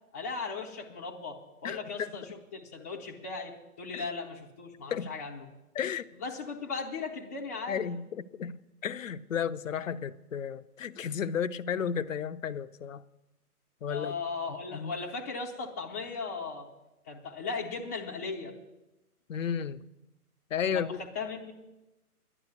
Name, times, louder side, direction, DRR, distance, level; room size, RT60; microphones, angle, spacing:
voice 1, 0.1-5.5 6.2-7.9 13.9-16.7 17.1-18.5 20.7-21.5, left 4 dB, 10° left, 0.5 m, -37 dB
voice 2, 1.6-2.1 3.9-4.1 4.9-5.1 5.7-6.1 7.7-13.0 13.8-14.2 14.7-14.9 19.3-19.8 20.5-21.0, left 7 dB, 60° left, 0.6 m, -33 dB
11.0 x 10.5 x 6.7 m
figure-of-eight pair, 140°, 46 cm